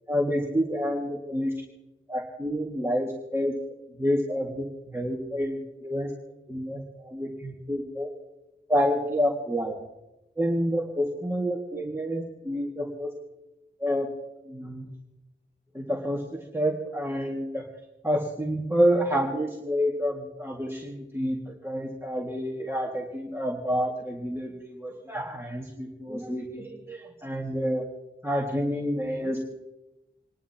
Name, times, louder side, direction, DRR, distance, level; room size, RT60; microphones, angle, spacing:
voice 1, 0.1-1.5 2.1-3.5 4.0-6.1 6.5-8.1 8.7-9.8 10.4-13.1 13.8-14.1 14.5-14.8 15.7-17.6 18.0-27.8 28.2-29.4, equal, 10° right, -2 dB, 1.9 m, -28 dB
28.5 x 11.0 x 2.9 m, 0.96 s
wide cardioid pair, 70°, 20 cm